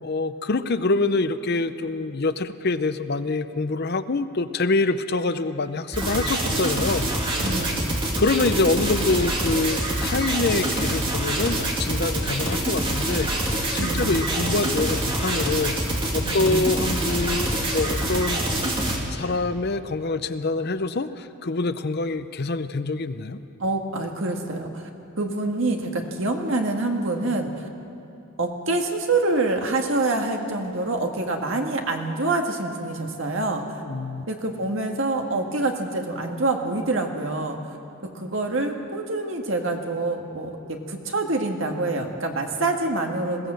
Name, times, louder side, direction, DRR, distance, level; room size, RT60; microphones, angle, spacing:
voice 1, 0.0-7.1 8.2-15.7 16.1-18.4 19.1-23.4 33.8-34.2, left 3 dB, 50° left, 11 dB, 0.7 m, -25 dB
sound 1, 5.9-19.0, right 1 dB, 25° right, 2.4 m, -25 dB
voice 2, 7.4-7.8 13.8-14.2 16.2-16.6 23.6-24.9 25.2-27.7 28.4-33.8 34.3-37.6 38.1-43.5, right 2 dB, 60° right, 3 dB, 1.8 m, -26 dB
21.0 x 16.5 x 7.7 m, 2.8 s
head